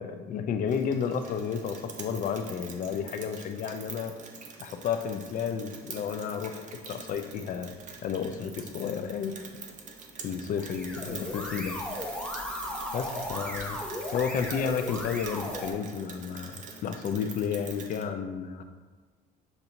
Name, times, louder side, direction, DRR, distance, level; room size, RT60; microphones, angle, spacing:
voice 1, 0.0-4.1 4.6-7.7 8.0-9.4 10.2-11.8 12.9-13.8 14.1-16.5 16.8-18.6, left 7 dB, 55° left, 7 dB, 0.4 m, -32 dB
Rain, 0.7-18.0, right 5 dB, 50° right, 0.6 m, -45 dB
sound 1, 10.5-15.7, left 1 dB, 5° left, 0.9 m, -36 dB
6.9 x 2.7 x 2.6 m, 1.4 s
cardioid pair, 110°, 17 cm